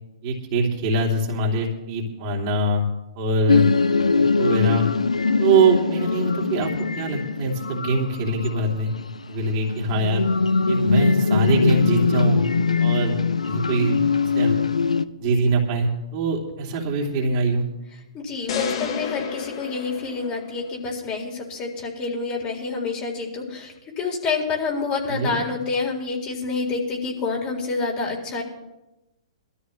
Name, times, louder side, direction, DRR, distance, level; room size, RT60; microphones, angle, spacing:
voice 1, 0.2-2.8 3.1-3.7 4.1-4.9 5.4-8.9 9.3-10.2 10.7-12.4 12.8-13.1 13.4-14.5 15.2-17.6 25.1-25.4, right 2 dB, 40° right, -1 dB, 2.9 m, -23 dB
sound 1, 3.5-15.1, left 4 dB, 90° left, 0.6 m, -22 dB
voice 2, 18.1-28.4, left 4 dB, 30° left, -1 dB, 4.0 m, -28 dB
sound 2, 18.5-20.8, left 6 dB, 55° left, 1.8 m, -31 dB
21.5 x 13.5 x 3.2 m, 0.98 s
hypercardioid pair, 125°, 3 cm